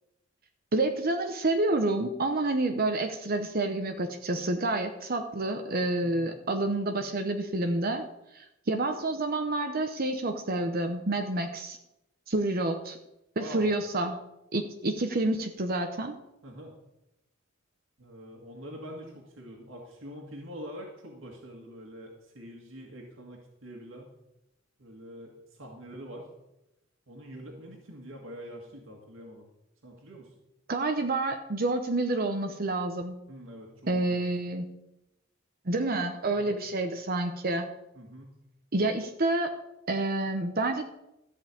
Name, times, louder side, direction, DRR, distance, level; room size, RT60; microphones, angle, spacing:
voice 1, 0.7-8.0 8.3-11.8 12.3-13.0 13.4-14.2 14.5-16.1 30.7-33.2 33.9-34.7 35.7-37.7 38.7-39.5 39.9-40.8, right 2 dB, 45° right, 6 dB, 0.9 m, -28 dB
voice 2, 13.3-13.7 16.4-16.7 18.0-24.1 24.8-26.3 27.1-29.5 29.8-30.4 33.3-34.2 36.3-36.5 37.9-38.3, equal, 70° right, 0 dB, 2.0 m, -45 dB
13.5 x 5.6 x 8.4 m, 0.89 s
head